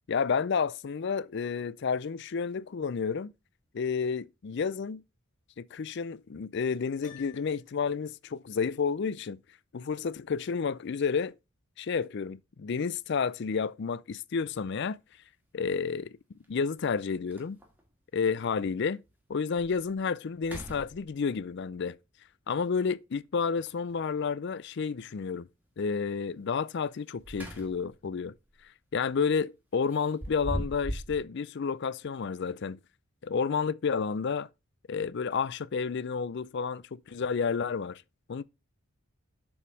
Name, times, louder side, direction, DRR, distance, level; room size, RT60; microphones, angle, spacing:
voice 1, 0.1-3.3 3.7-5.0 5.6-9.4 9.7-11.3 11.8-15.0 15.5-16.2 16.5-17.6 18.1-19.0 19.3-22.0 22.5-25.5 25.8-28.3 28.9-32.8 33.2-34.5 34.9-38.0 38.3-38.4, left 5 dB, 50° left, 0.4 m, -30 dB
Piano, 7.0-7.9, left 8 dB, 35° left, 1.8 m, -51 dB
sound 1, 14.6-14.7 16.4-16.5 16.9-17.0 17.3-17.9 18.4-18.5 19.1-19.2 19.6-19.9 20.3-21.4 23.5-24.2 26.9-28.0 28.4-28.6 29.9-31.2, equal, 10° right, 1.6 m, -40 dB
7.1 x 5.1 x 4.8 m
head